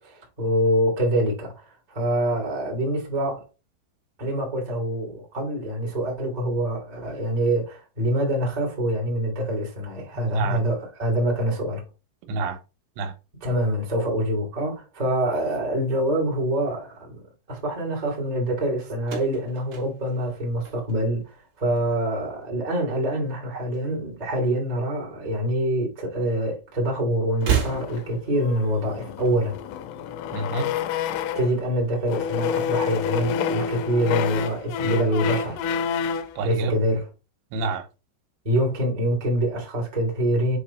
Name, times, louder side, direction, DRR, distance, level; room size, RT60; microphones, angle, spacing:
voice 1, 0.0-3.5 4.2-11.8 13.4-17.2 17.5-29.6 31.3-35.6 36.4-37.1 38.4-40.6, right 1 dB, 30° right, 0.7 m, -25 dB
voice 2, 10.2-10.6 12.3-12.6 13.0-13.1 30.3-30.7 36.4-36.8 37.5-37.9, right 3 dB, 75° right, 3.4 m, -28 dB
sound 1, 19.0-21.3 21.6-22.2 23.3-24.3 24.6-24.7 25.8-25.9 27.3-28.3, right 9 dB, 45° right, 2.7 m, -31 dB
sound 2, 27.4-31.6 32.0-36.4, left 7 dB, 85° left, 2.8 m, -28 dB
8.0 x 3.2 x 4.3 m
omnidirectional pair, 5.8 m